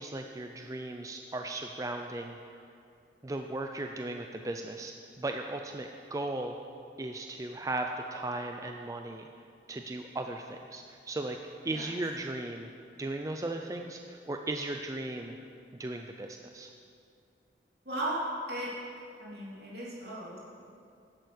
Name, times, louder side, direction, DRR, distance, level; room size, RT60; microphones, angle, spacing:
voice 1, 0.0-2.4 3.2-6.6 7.0-9.3 9.7-11.4 11.6-12.7 13.0-15.3 15.8-16.7, right 2 dB, 20° right, 4 dB, 0.4 m, -36 dB
voice 2, 17.8-18.7 19.2-20.4, right 1 dB, 65° right, -6 dB, 3.1 m, -36 dB
11.0 x 8.1 x 6.4 m, 2.5 s
head